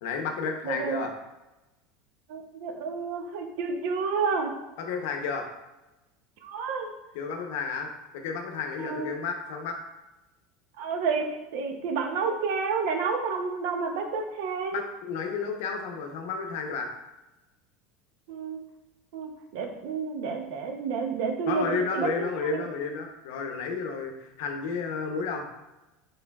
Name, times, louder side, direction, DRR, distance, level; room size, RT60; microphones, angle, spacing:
voice 1, 0.0-1.1 4.8-5.5 7.1-9.8 14.7-16.9 21.5-25.4, left 5 dB, 75° left, 4 dB, 0.6 m, -32 dB
voice 2, 0.6-1.0 2.3-4.5 6.4-6.9 8.8-9.1 10.8-14.8 18.3-18.6 19.1-22.3 22.5-22.7, right 5 dB, 70° right, 4 dB, 0.6 m, -30 dB
4.5 x 3.2 x 2.3 m, 1.0 s
supercardioid pair, 140°, 0 cm